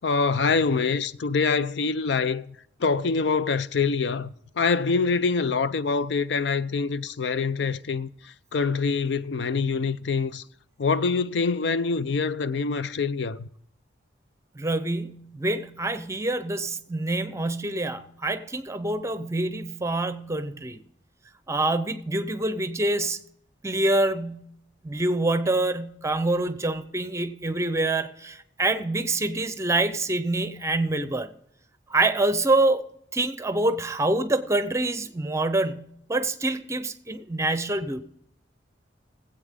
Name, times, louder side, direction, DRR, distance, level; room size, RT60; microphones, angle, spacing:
voice 1, 0.0-2.5 2.8-4.3 4.6-8.1 8.5-10.4 10.8-13.5, left 4 dB, 70° left, 0.5 m, -25 dB
voice 2, 14.5-20.8 21.5-23.2 23.6-24.5 24.8-31.3 31.9-32.8 33.1-38.0, right 2 dB, 15° right, 0.7 m, -26 dB
20.0 x 8.2 x 3.7 m
head